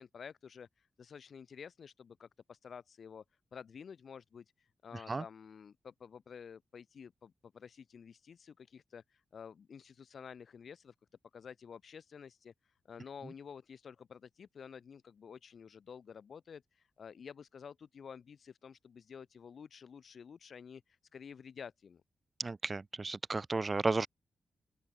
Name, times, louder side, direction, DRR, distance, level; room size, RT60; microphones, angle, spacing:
voice 1, 0.0-3.2 3.5-10.9 11.3-12.5 12.9-22.0, left 6 dB, 65° left, 5.4 m, -51 dB
voice 2, 22.4-24.1, right 3 dB, 40° right, 1.4 m, -33 dB
open air
supercardioid pair, 50°, 0 cm